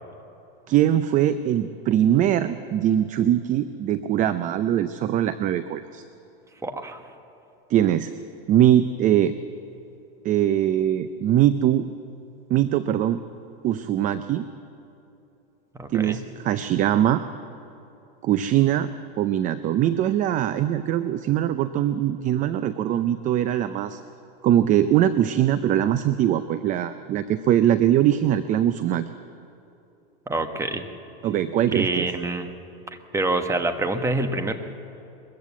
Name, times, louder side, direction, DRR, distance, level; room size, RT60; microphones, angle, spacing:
voice 1, 0.7-6.0 7.7-8.1 8.5-9.3 10.2-11.9 12.5-13.2 13.6-14.4 15.9-17.2 18.2-18.9 19.2-24.0 24.4-29.1 31.2-32.1, right 11 dB, 25° right, 12 dB, 0.5 m, -22 dB
voice 2, 6.6-7.0 15.8-16.2 30.3-30.9 31.7-32.5 33.1-34.5, right 2 dB, 10° right, 7 dB, 1.3 m, -26 dB
21.5 x 14.5 x 8.3 m, 2.9 s
supercardioid pair, 135°, 29 cm